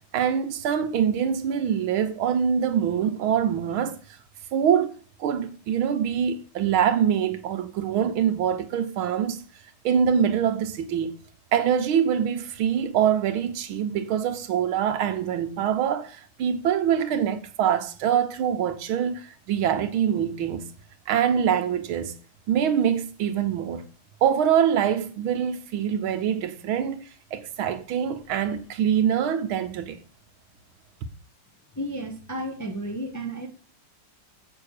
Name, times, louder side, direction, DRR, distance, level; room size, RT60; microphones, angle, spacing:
voice 1, 0.1-4.0 4.5-4.9 5.2-9.4 9.8-11.1 11.5-20.6 21.1-22.1 22.5-23.8 24.2-30.0, right 8 dB, 75° right, 1.7 m, -24 dB
voice 2, 31.7-33.5, right 1 dB, 10° left, 0.9 m, -32 dB
7.7 x 5.9 x 6.5 m
omnidirectional pair, 2.3 m